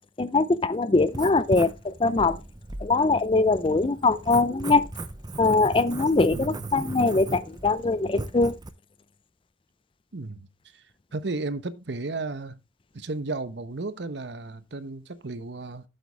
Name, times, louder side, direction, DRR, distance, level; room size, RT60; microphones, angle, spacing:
voice 1, 0.2-2.4 2.8-4.9 5.4-8.5, left 3 dB, 30° left, 0.4 m, -22 dB
Writing, 1.0-8.7, right 2 dB, 20° right, 0.7 m, -38 dB
voice 2, 6.3-6.8 10.1-10.5 10.7-10.8 11.1-12.6 12.9-15.8, right 3 dB, 70° right, 0.9 m, -34 dB
8.1 x 7.9 x 3.4 m
head